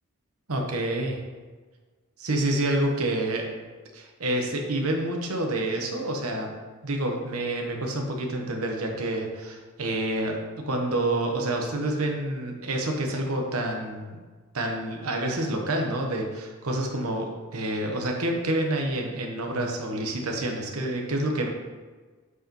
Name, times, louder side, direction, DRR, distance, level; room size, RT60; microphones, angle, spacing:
voice 1, 0.5-1.2 2.2-3.5 3.9-6.6 6.8-14.2 14.5-21.5, right 1 dB, 80° right, 2 dB, 1.0 m, -28 dB
8.2 x 4.7 x 3.1 m, 1.4 s
head